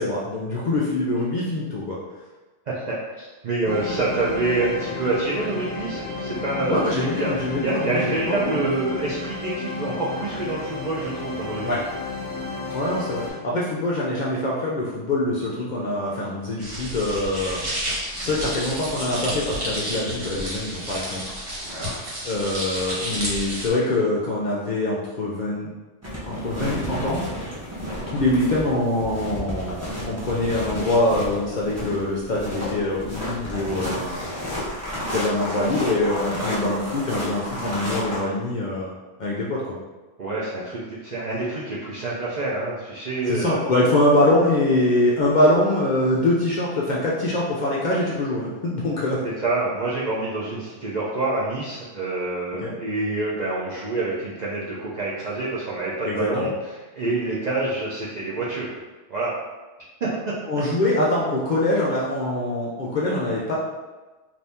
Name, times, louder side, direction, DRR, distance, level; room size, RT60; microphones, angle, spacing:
voice 1, 0.0-2.0 6.7-8.6 11.6-11.8 12.7-17.7 18.2-21.3 22.2-25.7 26.2-27.2 28.1-34.2 34.9-38.9 39.2-39.6 43.3-49.2 52.6-52.7 56.0-56.5 60.5-63.5, left 1 dB, 55° left, -5 dB, 0.5 m, -24 dB
voice 2, 2.7-7.3 7.6-11.8 18.2-18.3 21.6-22.0 28.0-28.1 36.4-36.5 40.2-43.6 49.4-56.5 57.0-58.7 59.1-59.3 60.0-60.3, right 2 dB, 55° right, -7 dB, 0.5 m, -27 dB
sound 1, 3.6-13.3, left 3 dB, 35° left, 1.0 m, -32 dB
sound 2, 16.6-23.7, equal, 75° right, 1.4 m, -31 dB
sound 3, 26.0-38.2, left 1 dB, 15° right, 0.6 m, -32 dB
2.7 x 2.6 x 3.4 m, 1.2 s
omnidirectional pair, 1.2 m